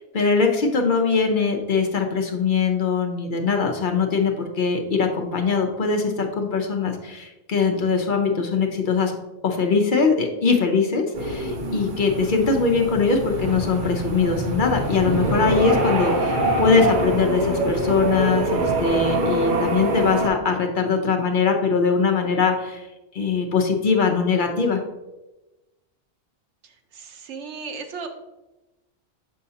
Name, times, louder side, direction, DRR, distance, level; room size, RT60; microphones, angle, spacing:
voice 1, 0.1-9.1 9.4-22.9 23.1-24.8, left 5 dB, 55° left, 3 dB, 0.8 m, -21 dB
sound 1, 11.1-20.3, right 1 dB, 50° right, 0.9 m, -24 dB
voice 2, 26.6-28.1, right 5 dB, 85° right, 5 dB, 1.0 m, -36 dB
6.6 x 5.5 x 2.8 m, 1.0 s
omnidirectional pair, 1.1 m